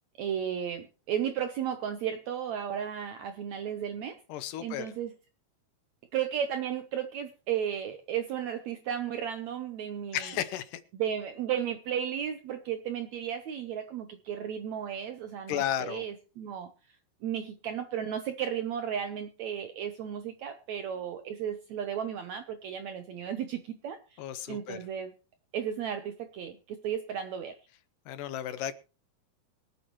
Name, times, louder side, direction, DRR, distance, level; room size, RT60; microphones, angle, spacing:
voice 1, 0.2-4.2 4.6-5.2 6.1-10.3 10.9-16.7 17.2-24.2 24.5-25.1 25.5-27.6, right 9 dB, 80° right, 8 dB, 1.6 m, -34 dB
voice 2, 4.3-4.9 10.1-10.8 15.5-16.0 24.2-24.8 28.1-28.7, left 11 dB, 75° left, 12 dB, 2.2 m, -33 dB
24.0 x 8.6 x 3.0 m, 0.33 s
omnidirectional pair, 4.3 m